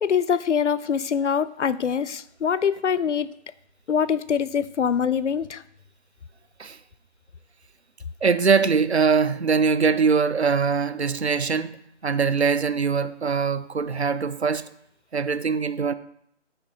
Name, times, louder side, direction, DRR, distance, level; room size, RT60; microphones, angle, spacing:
voice 1, 0.0-3.3 3.9-5.6, left 7 dB, 75° left, 0.5 m, -24 dB
voice 2, 8.2-14.6 15.1-15.9, right 5 dB, 65° right, 0.6 m, -22 dB
9.5 x 4.5 x 4.2 m
figure-of-eight pair, 180°, 36 cm